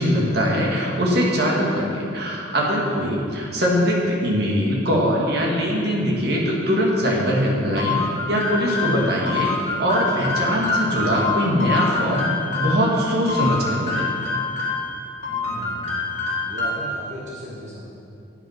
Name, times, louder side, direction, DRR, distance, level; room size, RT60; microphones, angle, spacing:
voice 1, 0.0-8.0 8.3-9.5 9.8-12.3 12.5-14.1, equal, 55° right, -3 dB, 1.9 m, -21 dB
voice 2, 2.8-3.2 10.1-10.3 15.3-15.9 16.4-17.9, equal, 35° right, -5 dB, 1.4 m, -36 dB
sound 1, 7.8-12.8 13.3-14.9 15.2-17.0, left 4 dB, 35° left, 2.2 m, -26 dB
8.8 x 8.4 x 5.8 m, 2.5 s
head